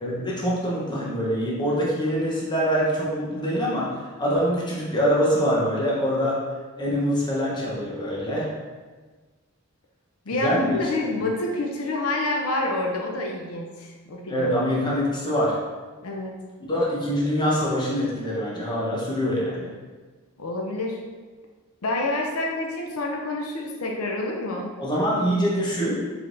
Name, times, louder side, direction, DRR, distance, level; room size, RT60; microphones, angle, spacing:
voice 1, 0.0-3.9 4.2-6.4 6.8-8.5 10.4-10.8 14.3-15.6 16.7-19.7 24.8-26.0, equal, 20° left, -6 dB, 0.9 m, -24 dB
voice 2, 10.3-14.5 16.0-16.3 20.4-21.0 21.8-24.8, left 2 dB, 80° left, 0 dB, 0.6 m, -28 dB
4.7 x 3.5 x 2.6 m, 1.4 s
head